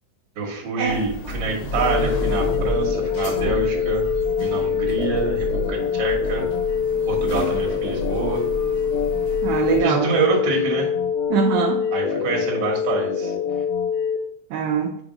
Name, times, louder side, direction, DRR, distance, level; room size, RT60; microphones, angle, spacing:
voice 1, 0.3-4.0 4.4-6.4 7.1-8.4 9.8-10.9 11.9-13.3, right 4 dB, 50° right, -1 dB, 1.5 m, -26 dB
sound 1, 0.8-9.8, left 1 dB, 55° left, 2.0 m, -30 dB
sound 2, 1.8-14.2, left 7 dB, 80° left, 1.9 m, -24 dB
voice 2, 9.4-10.1 11.3-11.9 14.5-15.0, right 6 dB, 80° right, 2 dB, 1.8 m, -22 dB
5.1 x 4.9 x 3.8 m, 0.68 s
omnidirectional pair, 3.9 m